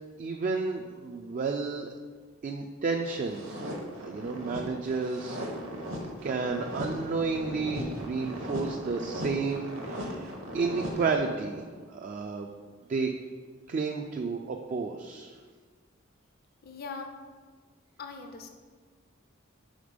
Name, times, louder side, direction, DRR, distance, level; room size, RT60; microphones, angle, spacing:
voice 1, 0.2-1.9 2.4-3.5 4.0-5.4 6.2-11.6 11.9-12.5 12.9-13.1 13.7-15.4, right 4 dB, 40° right, 2 dB, 0.3 m, -31 dB
sound 1, 3.1-11.7, equal, 70° right, 1.0 m, -38 dB
voice 2, 16.6-17.1 18.0-18.5, left 4 dB, 50° left, 5 dB, 0.5 m, -40 dB
5.1 x 3.9 x 5.1 m, 1.5 s
head